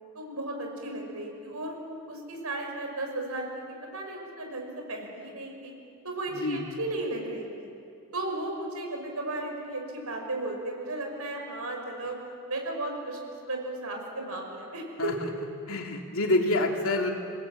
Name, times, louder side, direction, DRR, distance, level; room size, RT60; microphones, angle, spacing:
voice 1, 0.1-1.8 2.1-5.7 6.0-7.7 8.1-12.1 12.5-13.2 13.4-15.1, right 2 dB, 85° right, 2 dB, 5.7 m, -35 dB
voice 2, 6.3-6.7 15.0-15.3 15.7-17.1, left 2 dB, 70° left, 2 dB, 2.8 m, -27 dB
28.0 x 18.5 x 8.7 m, 2.6 s
head